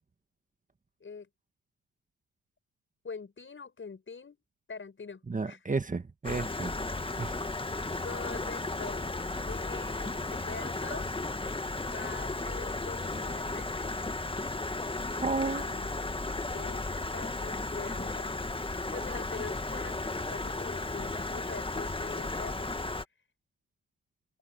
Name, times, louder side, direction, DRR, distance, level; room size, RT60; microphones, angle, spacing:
voice 1, 3.0-4.4 4.7-5.6 8.0-11.1 11.8-13.8 15.5-16.2 16.5-18.4 18.9-22.9, left 5 dB, 40° left, 6.6 m, -44 dB
voice 2, 5.3-6.7 7.2-7.4 15.2-15.7, right 3 dB, 25° right, 1.7 m, -32 dB
Stream, 6.2-23.0, left 2 dB, 15° left, 1.8 m, -34 dB
supercardioid pair, 55°, 32 cm